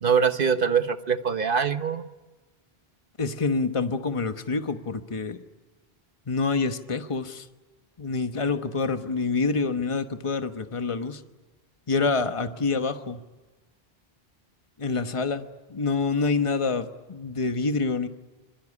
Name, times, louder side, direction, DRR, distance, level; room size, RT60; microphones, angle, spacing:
voice 1, 0.0-2.1, right 6 dB, 60° right, 9 dB, 1.4 m, -23 dB
voice 2, 3.2-5.4 6.3-7.5 8.0-11.2 11.9-13.2 14.8-18.1, left 4 dB, 30° left, 8 dB, 1.2 m, -27 dB
26.5 x 22.0 x 9.9 m, 1.2 s
omnidirectional pair, 1.0 m